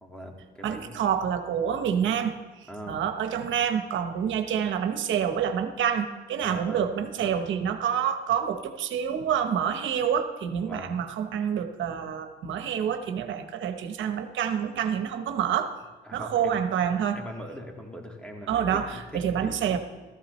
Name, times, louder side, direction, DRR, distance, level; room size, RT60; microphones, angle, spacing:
voice 1, 0.0-1.0 2.7-3.0 6.4-7.4 10.6-11.0 16.0-16.6 17.1-19.8, equal, 5° left, 1 dB, 2.1 m, -41 dB
voice 2, 0.6-2.3 2.9-15.8 16.1-17.2 18.5-19.8, right 8 dB, 75° right, 7 dB, 1.0 m, -27 dB
15.0 x 13.5 x 3.2 m, 1.3 s
cardioid pair, 90°, 20 cm